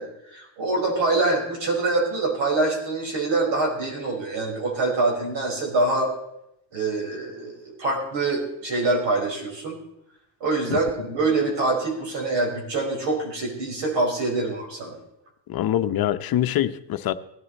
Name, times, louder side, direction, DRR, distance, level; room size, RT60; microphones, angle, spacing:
voice 1, 0.0-6.1 6.7-9.8 10.4-15.0, right 2 dB, 70° right, 0 dB, 5.0 m, -25 dB
voice 2, 15.5-17.1, left 12 dB, 50° left, 9 dB, 0.8 m, -24 dB
17.0 x 12.5 x 4.1 m, 0.81 s
cardioid pair, 130°, 45 cm